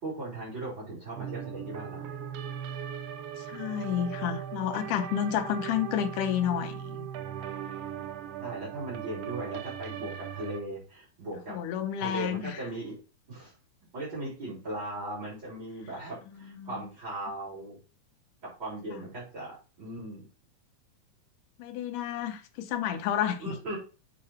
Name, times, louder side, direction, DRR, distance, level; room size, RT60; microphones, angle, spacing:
voice 1, 0.0-2.2 8.4-11.6 12.0-13.0 13.3-13.5 13.9-17.8 18.6-20.3 23.4-23.8, right 1 dB, 35° right, 4.1 m, -38 dB
sound 1, 1.2-10.6, right 9 dB, 85° right, 1.3 m, -39 dB
voice 2, 3.4-7.1 11.5-12.5 16.4-16.9 19.0-19.1 21.6-23.6, left 9 dB, 80° left, 2.3 m, -31 dB
7.7 x 4.5 x 4.3 m
omnidirectional pair, 3.8 m